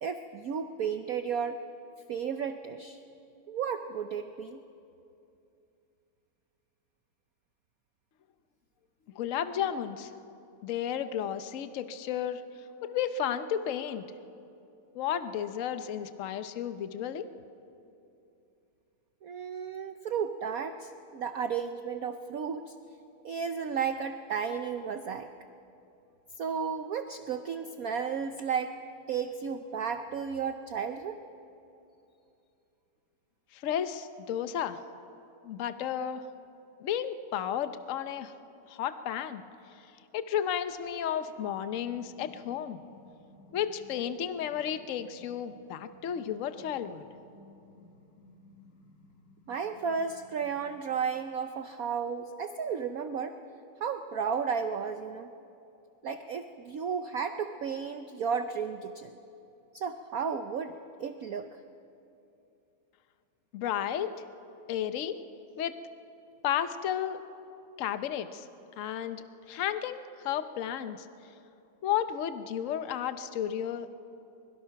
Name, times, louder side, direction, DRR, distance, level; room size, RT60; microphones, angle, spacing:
voice 1, 0.0-1.6 2.1-3.0 3.5-4.6 19.2-22.7 23.2-25.3 26.4-28.8 29.1-31.2 49.5-53.4 53.8-55.3 56.0-59.2 59.7-61.5, right 6 dB, 90° right, 8 dB, 0.7 m, -33 dB
voice 2, 9.1-10.1 10.6-12.4 12.8-14.0 14.9-17.2 33.5-34.8 35.4-36.2 36.8-38.3 38.7-39.4 40.1-42.8 43.5-47.0 63.5-64.1 64.7-65.2 65.6-65.7 66.4-67.2 67.8-68.5 68.8-71.1 71.8-73.9, left 9 dB, 70° left, 10 dB, 0.7 m, -33 dB
sound 1, 41.5-50.8, left 1 dB, 30° left, 1.7 m, -57 dB
24.0 x 22.5 x 5.8 m, 2.7 s
omnidirectional pair, 2.4 m